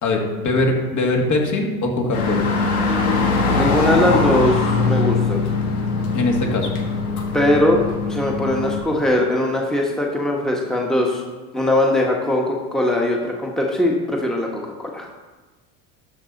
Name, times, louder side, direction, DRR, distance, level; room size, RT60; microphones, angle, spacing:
voice 1, 0.0-2.5 6.1-6.7, left 2 dB, 45° left, 1 dB, 2.2 m, -21 dB
sound 1, 2.1-8.8, left 4 dB, 85° left, 1.7 m, -21 dB
voice 2, 3.5-5.4 7.3-7.8 8.1-11.2 11.5-15.1, left 1 dB, ahead, -1 dB, 1.4 m, -20 dB
12.0 x 6.0 x 4.0 m, 1.3 s
hypercardioid pair, 90°, 43 cm